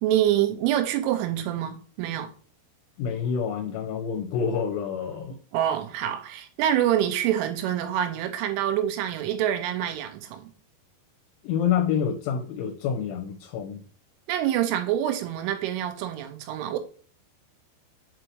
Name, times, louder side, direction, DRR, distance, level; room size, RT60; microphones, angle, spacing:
voice 1, 0.0-2.3 5.5-10.5 14.3-16.8, right 11 dB, 80° right, 3.2 m, -26 dB
voice 2, 3.0-5.4 11.4-13.8, left 7 dB, 75° left, 3.3 m, -27 dB
7.1 x 4.8 x 4.7 m
omnidirectional pair, 5.8 m